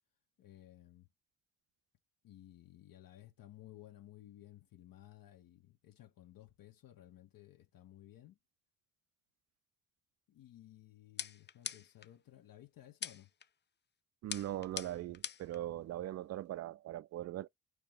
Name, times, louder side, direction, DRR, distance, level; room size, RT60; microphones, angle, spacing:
voice 1, 0.4-1.1 2.2-8.4 10.3-13.3, left 13 dB, 55° left, 0.8 m, -57 dB
sound 1, 11.2-12.1 13.0-13.5 14.3-15.6, left 8 dB, 25° left, 0.5 m, -43 dB
voice 2, 14.2-17.5, right 13 dB, 40° right, 0.4 m, -40 dB
4.7 x 3.1 x 3.5 m
hypercardioid pair, 50°, 42 cm